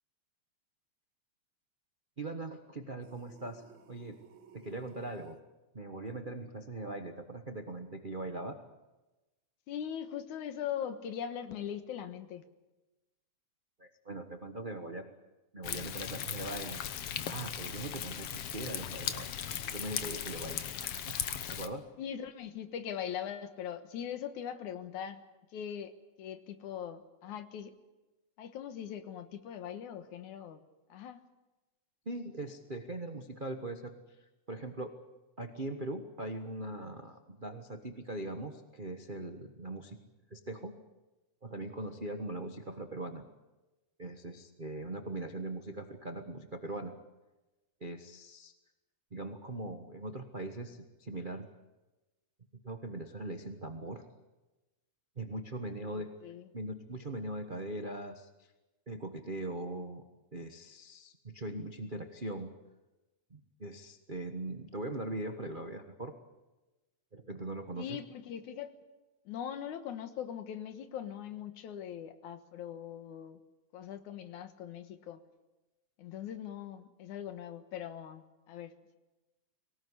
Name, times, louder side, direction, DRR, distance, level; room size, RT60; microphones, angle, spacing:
voice 1, 2.2-4.2 4.5-5.4 5.7-8.6 13.8-15.1 15.5-16.8 17.3-19.3 19.6-21.2 21.5-21.8 32.0-35.0 35.4-40.0 40.3-40.7 41.4-43.3 44.0-46.9 47.8-48.5 49.1-51.5 52.6-54.0 55.2-56.1 56.5-58.5 58.9-60.0 60.3-62.5 63.3-66.1 67.1-68.0, right 2 dB, 85° right, 6 dB, 0.4 m, -41 dB
sound 1, 3.0-5.4, right 7 dB, 50° right, 1.9 m, -57 dB
voice 2, 9.7-12.5 22.0-25.2 25.5-25.9 26.2-27.7 28.4-30.6 30.9-31.2 55.9-56.5 67.8-68.8 69.3-73.4 73.7-75.2 76.0-79.0, left 9 dB, 80° left, 10 dB, 2.8 m, -41 dB
Thunder, 15.6-21.7, left 9 dB, 60° left, 1.9 m, -38 dB
23.5 x 18.5 x 9.8 m, 1.1 s
omnidirectional pair, 3.4 m